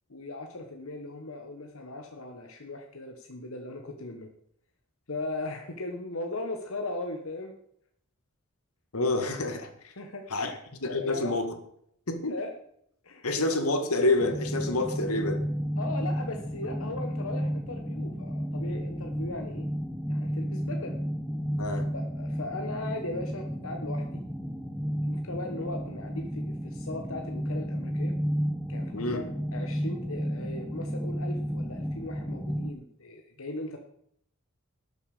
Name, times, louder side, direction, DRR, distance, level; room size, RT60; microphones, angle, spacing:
voice 1, 0.1-4.3 5.1-7.6 10.0-10.6 10.9-11.4 12.3-12.5 13.0-13.3 15.8-19.7 20.1-21.0 21.9-24.2 25.0-28.1 28.7-33.8, left 2 dB, 70° left, 3 dB, 1.3 m, -38 dB
voice 2, 8.9-9.9 10.3-10.5 10.8-11.5 12.1-12.4 13.2-15.4 21.6-21.9 28.9-29.2, left 2 dB, 85° left, 7 dB, 1.8 m, -28 dB
sound 1, 14.2-32.7, equal, ahead, 0.8 m, -32 dB
12.0 x 6.8 x 6.6 m, 0.69 s
head